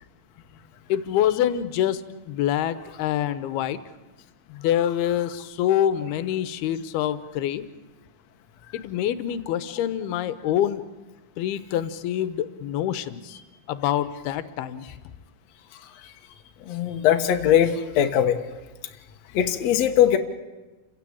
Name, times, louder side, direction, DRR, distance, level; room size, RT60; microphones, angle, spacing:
voice 1, 0.9-2.0 2.3-3.8 4.5-7.6 8.7-10.8 11.4-13.4 13.7-14.8, left 11 dB, 80° left, 13 dB, 2.8 m, -26 dB
voice 2, 16.7-18.4 19.3-20.2, left 10 dB, 60° left, 5 dB, 2.0 m, -20 dB
29.0 x 16.0 x 8.6 m, 1.1 s
omnidirectional pair, 4.5 m